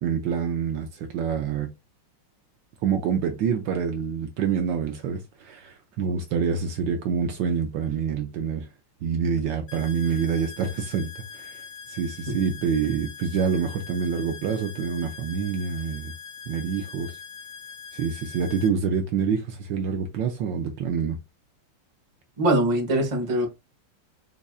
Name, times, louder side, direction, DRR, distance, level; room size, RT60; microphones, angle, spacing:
voice 1, 0.0-1.7 2.8-8.7 9.0-11.6 11.9-16.1 16.5-17.2 17.9-21.2, right 6 dB, 75° right, 1.2 m, -27 dB
sound 1, 9.7-18.7, left 6 dB, 50° left, 1.0 m, -42 dB
voice 2, 22.4-23.5, right 1 dB, 25° right, 0.7 m, -22 dB
5.3 x 2.4 x 2.3 m
omnidirectional pair, 2.3 m